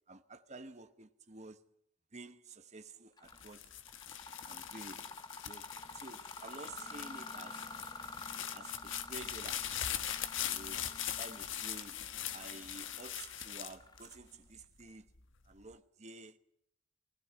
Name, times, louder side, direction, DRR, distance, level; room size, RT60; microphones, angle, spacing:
voice 1, 0.0-1.6 2.1-3.7 4.4-5.2 5.4-7.8 8.5-10.0 10.4-15.1 15.5-16.4, right 3 dB, 35° right, 1.1 m, -51 dB
Mechanisms, 3.2-3.5 3.9-14.4, left 3 dB, 20° left, 1.1 m, -49 dB
sound 1, 3.3-14.6 15.2-15.7, left 10 dB, 70° left, 1.3 m, -41 dB
20.0 x 17.5 x 9.3 m
head